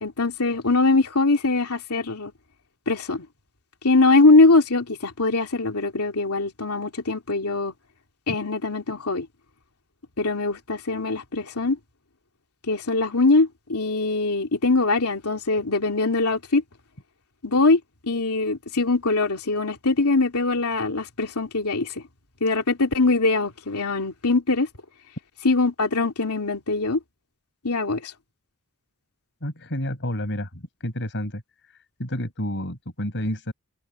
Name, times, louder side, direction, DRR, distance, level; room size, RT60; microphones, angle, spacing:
voice 1, 0.0-2.3 2.9-3.3 3.8-7.7 8.3-9.3 10.2-11.8 12.7-16.6 17.4-22.0 22.4-24.7 25.4-27.0 27.6-28.1, left 3 dB, 90° left, 2.8 m, -22 dB
voice 2, 29.4-30.5 30.8-31.4 32.0-33.5, left 1 dB, 55° left, 6.0 m, -29 dB
head